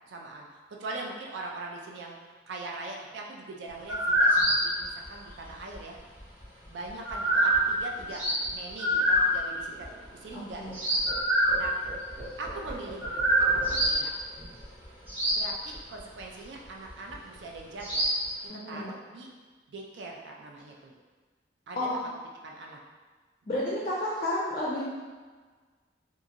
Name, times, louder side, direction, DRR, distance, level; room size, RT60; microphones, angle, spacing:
voice 1, 0.1-2.2 2.5-6.0 6.7-8.2 8.5-11.0 11.6-11.8 12.4-14.1 15.3-18.0 18.4-19.3 19.7-20.9 21.7-21.9 22.4-22.8, right 2 dB, 65° right, 0 dB, 0.4 m, -41 dB
sound 1, 3.9-5.8 6.2-8.5 8.8-12.1 12.5-12.6 13.0-14.0 14.4-15.5 15.7-16.2 16.9-17.1 17.8-18.2, right 1 dB, 10° right, 0.8 m, -25 dB
sound 2, 7.3-10.7 11.0-16.0 16.3-16.5 16.8-17.3, right 1 dB, 45° right, 0.7 m, -45 dB
voice 2, 10.3-10.8 18.5-18.9 21.7-22.0 23.5-24.8, left 1 dB, 35° left, -6 dB, 0.4 m, -31 dB
2.8 x 2.5 x 2.5 m, 1.4 s
head